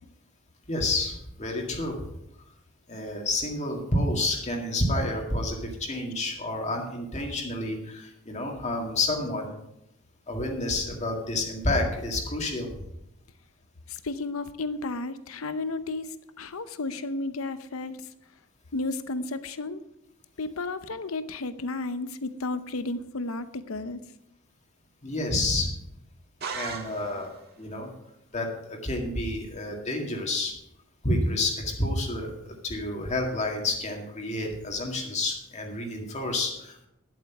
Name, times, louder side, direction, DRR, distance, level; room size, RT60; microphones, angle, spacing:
voice 1, 0.7-2.0 2.9-9.5 10.3-12.7 25.0-25.7 26.5-27.3 27.6-27.9 28.3-30.5 31.0-36.9, left 2 dB, 35° left, 1 dB, 2.0 m, -29 dB
voice 2, 13.9-18.0 18.7-19.8 20.4-24.0, left 2 dB, 90° left, 12 dB, 0.8 m, -33 dB
sound 1, 26.4-27.5, right 5 dB, 50° right, 1.6 m, -36 dB
11.5 x 7.7 x 5.9 m, 0.81 s
head